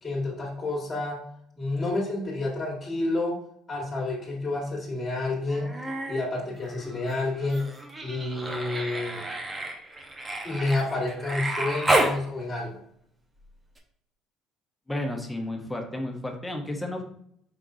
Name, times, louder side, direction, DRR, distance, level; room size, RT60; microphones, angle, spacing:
voice 1, 0.0-1.2 1.6-3.4 3.7-5.7 6.1-7.7 8.0-9.2 10.4-12.8, left 2 dB, 25° left, -3 dB, 1.7 m, -29 dB
Human voice, 5.5-6.3 6.6-12.2 13.8-13.9, right 1 dB, 20° right, 0.9 m, -30 dB
voice 2, 14.9-17.0, left 1 dB, 10° left, 2 dB, 1.1 m, -32 dB
4.9 x 3.5 x 2.7 m, 0.69 s
hypercardioid pair, 65°, 0 cm